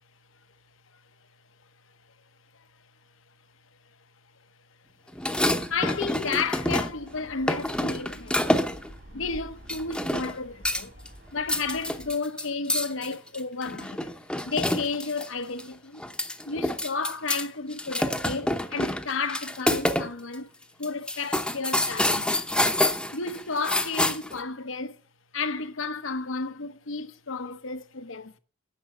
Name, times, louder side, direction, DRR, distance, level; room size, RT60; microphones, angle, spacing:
sound 1, 5.1-7.1 7.5-8.9 9.7-10.4 10.6-11.1 11.4-15.3 15.6-15.7 16.0-17.4 17.7-20.1 20.3-20.4 20.8-24.4, left 1 dB, 5° left, 0.8 m, -27 dB
sound 2, 5.5-12.1, equal, 60° right, 2.8 m, -49 dB
voice 1, 5.7-10.9 11.3-14.0 14.4-16.0 16.5-20.5 20.8-22.4 23.1-25.0 25.3-28.4, left 4 dB, 75° left, 1.0 m, -32 dB
10.0 x 6.6 x 7.5 m
head